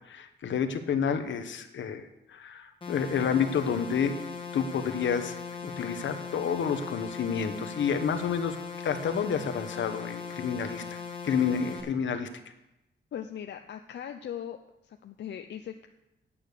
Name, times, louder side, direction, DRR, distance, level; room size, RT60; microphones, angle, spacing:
voice 1, 0.1-2.0 2.3-4.1 4.5-5.3 5.6-8.6 8.8-10.8 11.2-12.3, left 7 dB, 90° left, 9 dB, 1.0 m, -29 dB
sound 1, 2.8-11.8, left 5 dB, 25° left, 1.7 m, -39 dB
voice 2, 13.1-14.6 14.8-15.9, left 9 dB, 70° left, 6 dB, 0.5 m, -39 dB
8.8 x 8.6 x 6.5 m, 0.93 s
wide cardioid pair, 170°, 19 cm